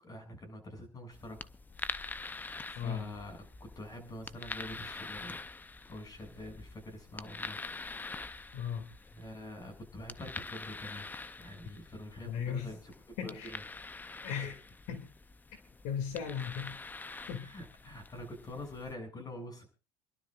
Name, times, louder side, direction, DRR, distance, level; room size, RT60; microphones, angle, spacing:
voice 1, 0.0-1.4 2.7-5.4 5.9-7.6 9.1-11.1 11.4-12.9 13.2-13.6 17.4-19.7, left 1 dB, 30° left, 6 dB, 6.9 m, -45 dB
sound 1, 1.1-18.9, left 3 dB, 15° left, 0.6 m, -45 dB
voice 2, 2.8-3.1 8.5-8.9 12.3-12.7 13.2-13.5 14.2-14.6 14.9-15.1 15.8-16.8 17.3-17.5, left 8 dB, 70° left, 7 dB, 2.5 m, -36 dB
28.0 x 12.0 x 2.5 m, 0.31 s
supercardioid pair, 100°, 13 cm